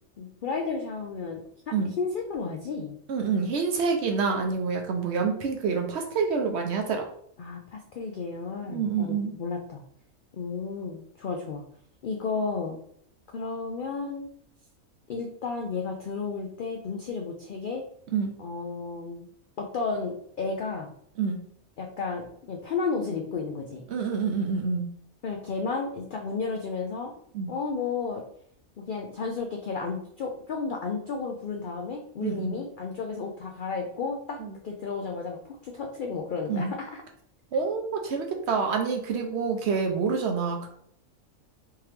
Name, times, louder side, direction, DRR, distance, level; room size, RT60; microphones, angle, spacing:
voice 1, 0.2-1.4 1.7-3.0 7.4-9.8 10.3-11.6 12.0-12.8 13.3-14.3 15.1-17.8 18.4-19.2 19.6-20.9 21.8-23.8 25.2-27.1 27.5-28.2 28.8-37.0, left 4 dB, 85° left, 2 dB, 0.4 m, -33 dB
voice 2, 3.1-7.1 8.7-9.3 18.1-18.3 21.2-21.4 23.9-24.9 27.3-27.5 32.2-32.5 34.4-34.5 36.5-36.7 37.5-40.7, right 5 dB, 65° right, 3 dB, 0.8 m, -27 dB
3.5 x 3.0 x 3.2 m, 0.66 s
omnidirectional pair, 1.4 m